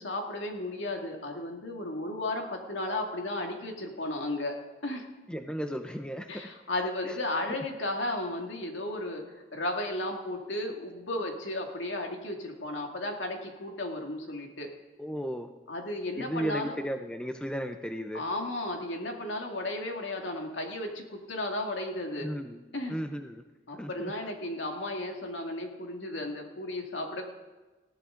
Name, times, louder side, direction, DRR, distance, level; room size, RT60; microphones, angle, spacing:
voice 1, 0.0-4.6 4.8-5.1 6.3-14.7 15.7-16.8 18.1-22.3 22.7-23.0 23.7-27.2, left 1 dB, 75° left, 2 dB, 2.3 m, -34 dB
voice 2, 5.3-6.3 7.0-7.1 15.0-15.5 16.2-18.2 22.2-22.6 22.9-23.4 23.8-24.1, equal, 5° left, 6 dB, 0.6 m, -34 dB
20.0 x 15.0 x 3.9 m, 1.2 s
head